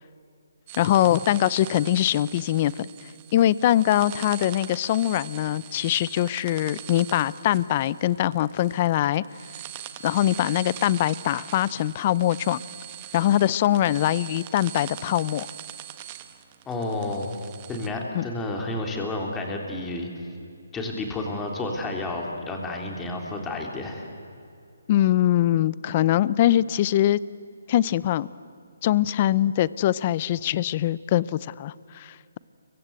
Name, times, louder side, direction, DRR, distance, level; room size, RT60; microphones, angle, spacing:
sound 1, 0.7-17.9, right 12 dB, 30° right, 1.3 m, -42 dB
voice 1, 0.8-2.9 3.3-9.2 10.0-12.6 13.1-15.5 18.1-18.3 24.9-27.2 27.7-28.3 28.8-32.4, left 13 dB, 30° left, 20 dB, 0.6 m, -22 dB
voice 2, 16.6-17.3 17.7-20.1 20.7-24.1, left 2 dB, 10° left, 1 dB, 3.5 m, -31 dB
29.5 x 23.5 x 8.2 m, 2.4 s
hypercardioid pair, 160°, 0 cm